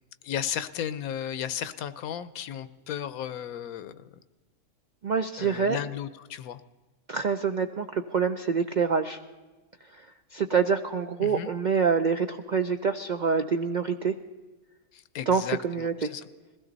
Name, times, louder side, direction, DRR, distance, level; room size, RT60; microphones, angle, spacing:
voice 1, 0.2-4.1 5.4-6.6 11.2-11.5 14.9-16.3, left 9 dB, 70° left, 14 dB, 1.1 m, -34 dB
voice 2, 5.0-5.8 7.1-9.2 10.3-14.1 15.3-16.1, right 6 dB, 80° right, 7 dB, 0.4 m, -26 dB
21.5 x 16.0 x 4.0 m, 1.2 s
omnidirectional pair, 1.6 m